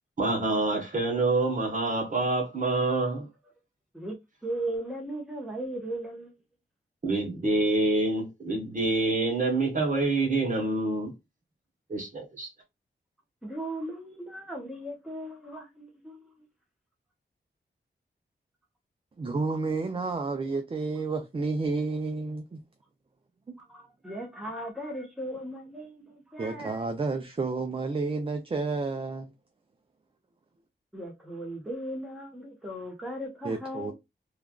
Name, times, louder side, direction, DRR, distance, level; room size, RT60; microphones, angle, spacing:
voice 1, 0.2-3.3 7.0-11.1 11.9-12.5, right 2 dB, 45° right, 1.1 m, -26 dB
voice 2, 4.4-6.3 13.4-16.5 23.6-26.8 30.9-33.9, right 1 dB, ahead, 1.0 m, -37 dB
voice 3, 19.2-22.6 26.4-29.3 33.4-33.9, right 3 dB, 30° right, 0.4 m, -30 dB
3.2 x 2.4 x 2.3 m
wide cardioid pair, 95°, 19 cm